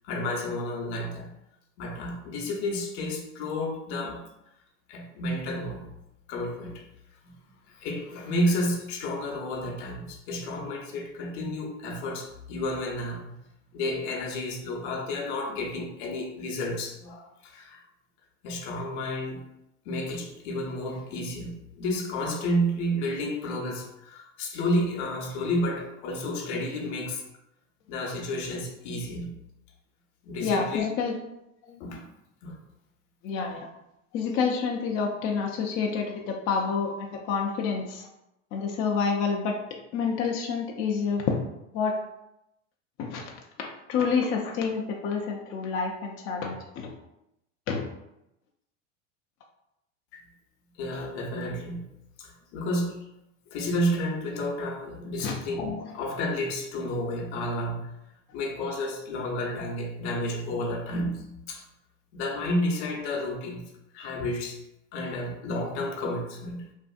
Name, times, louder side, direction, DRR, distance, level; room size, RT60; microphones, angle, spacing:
voice 1, 0.0-1.3 1.8-4.2 4.9-6.0 6.3-6.8 7.2-7.3 7.7-13.4 13.7-17.8 18.4-19.4 19.9-27.2 27.9-29.3 30.2-30.8 31.6-32.0 32.4-32.6 50.1-50.2 50.8-51.9 52.2-53.1 53.5-57.9 58.3-61.6 62.1-63.7 63.9-64.6 64.9-66.7, left 1 dB, 65° left, 2 dB, 0.7 m, -31 dB
voice 2, 30.4-31.1 33.2-33.7 34.1-38.1 38.5-39.6 39.9-41.4 41.7-42.0 43.0-43.2 43.6-46.9 47.7-47.9 55.2-55.3, left 5 dB, 35° left, 0 dB, 0.4 m, -28 dB
2.6 x 2.5 x 2.4 m, 0.85 s
hypercardioid pair, 100°, 37 cm